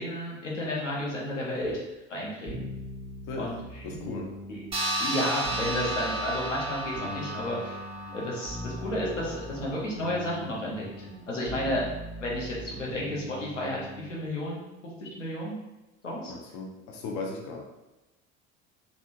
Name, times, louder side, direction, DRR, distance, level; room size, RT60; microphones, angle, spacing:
voice 1, 0.0-2.7 3.4-4.0 4.5-4.6 5.0-7.8 8.1-11.8 12.2-14.6 15.0-15.6 16.0-16.3, left 1 dB, 85° left, -4 dB, 0.9 m, -32 dB
sound 1, 2.5-14.3, equal, 35° left, 1.3 m, -41 dB
voice 2, 3.8-4.3 16.3-17.6, left 3 dB, 55° left, 1 dB, 0.8 m, -36 dB
sound 2, 4.7-9.6, right 1 dB, 15° right, 0.8 m, -33 dB
3.5 x 2.4 x 2.5 m, 1.0 s
figure-of-eight pair, 60°, 36 cm